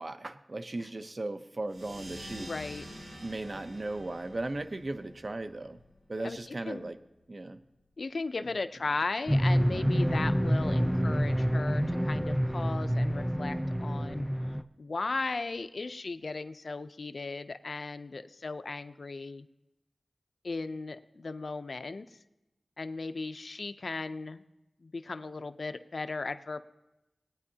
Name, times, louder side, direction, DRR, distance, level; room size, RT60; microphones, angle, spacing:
voice 1, 0.0-2.5 3.2-5.8 6.1-7.0 7.3-7.6 9.7-9.9, right 2 dB, 50° right, 10 dB, 0.7 m, -37 dB
sound 1, 1.7-6.8, equal, 80° right, 4.0 m, -48 dB
voice 2, 2.4-2.8 6.2-6.4 6.7-6.9 8.0-14.3 14.8-19.5 20.4-22.2 22.8-24.4 24.8-26.6, left 3 dB, 70° left, 10 dB, 0.5 m, -36 dB
sound 2, 9.3-14.6, equal, 5° right, 0.5 m, -27 dB
19.5 x 9.7 x 2.8 m, 0.96 s
wide cardioid pair, 60°, 0 cm